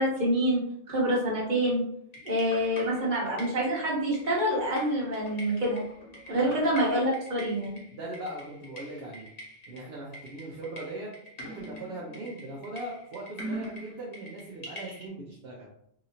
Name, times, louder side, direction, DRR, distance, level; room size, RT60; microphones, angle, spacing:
voice 1, 0.0-1.8 2.2-5.8 6.3-7.8, equal, 50° right, -4 dB, 1.1 m, -27 dB
sound 1, 2.1-15.1, equal, 40° left, 0.9 m, -44 dB
voice 2, 7.9-9.3 9.7-15.7, right 1 dB, 70° right, -4 dB, 0.9 m, -40 dB
3.0 x 2.8 x 2.6 m, 0.71 s
omnidirectional pair, 1.1 m